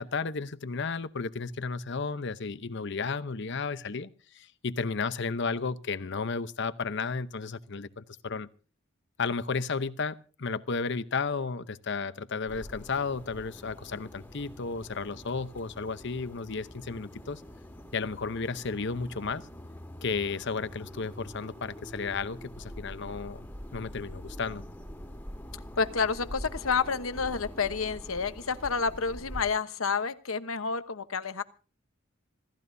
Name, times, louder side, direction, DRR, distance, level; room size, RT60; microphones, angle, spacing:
voice 1, 0.0-8.5 9.2-17.4 17.9-19.4 20.0-23.5 23.7-24.6, left 4 dB, 60° left, 13 dB, 0.8 m, -33 dB
sound 1, 12.5-29.4, equal, 10° left, 2.0 m, -45 dB
voice 2, 25.8-31.4, left 5 dB, 90° left, 12 dB, 1.1 m, -29 dB
26.5 x 14.5 x 2.7 m, 0.37 s
head